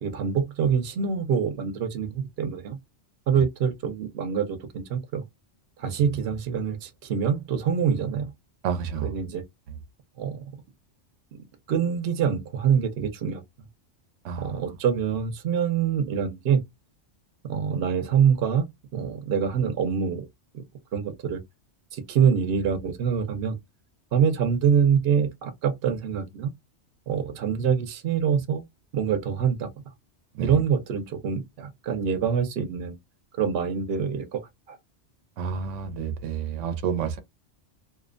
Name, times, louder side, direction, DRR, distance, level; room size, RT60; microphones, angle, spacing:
voice 1, 0.0-2.8 3.3-5.2 5.8-8.3 9.0-9.4 10.2-10.6 11.7-13.4 14.4-16.6 17.4-20.3 20.5-20.6 20.9-21.4 21.9-23.6 24.1-26.5 27.1-28.6 28.9-29.7 30.4-32.9 33.4-34.4 34.7-34.8, right 7 dB, 60° right, 0.9 m, -25 dB
voice 2, 8.6-9.1 14.2-14.7 30.3-30.5 35.4-37.2, right 7 dB, 90° right, 0.9 m, -30 dB
2.7 x 2.1 x 2.4 m
omnidirectional pair, 1.2 m